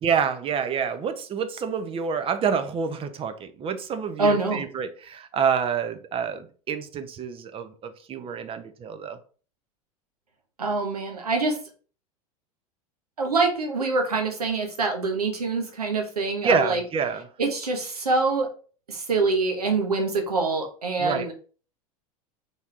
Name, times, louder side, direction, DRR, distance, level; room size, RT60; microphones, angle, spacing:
voice 1, 0.0-9.2 16.4-17.3 21.0-21.3, right 6 dB, 30° right, 0.6 m, -27 dB
voice 2, 4.2-4.6 10.6-11.6 13.2-16.8 17.4-18.5 18.9-21.3, right 3 dB, 90° right, 0.9 m, -25 dB
4.0 x 3.4 x 2.4 m
hypercardioid pair, 85°, 19 cm